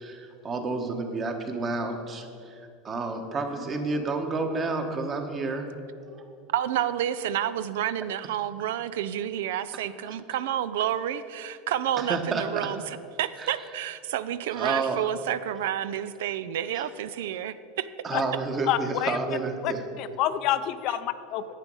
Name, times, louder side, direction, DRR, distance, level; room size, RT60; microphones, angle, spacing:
voice 1, 0.0-5.7 6.1-6.2 10.0-10.4 12.0-12.7 13.4-13.5 14.5-15.1 16.7-16.8 18.0-19.8, right 3 dB, 30° right, 5 dB, 1.2 m, -30 dB
voice 2, 6.5-17.8, right 11 dB, 85° right, 14 dB, 0.4 m, -30 dB
voice 3, 18.7-19.2 19.6-21.5, left 12 dB, 50° left, 12 dB, 0.5 m, -28 dB
10.5 x 8.3 x 5.4 m, 2.5 s
supercardioid pair, 130°, 0 cm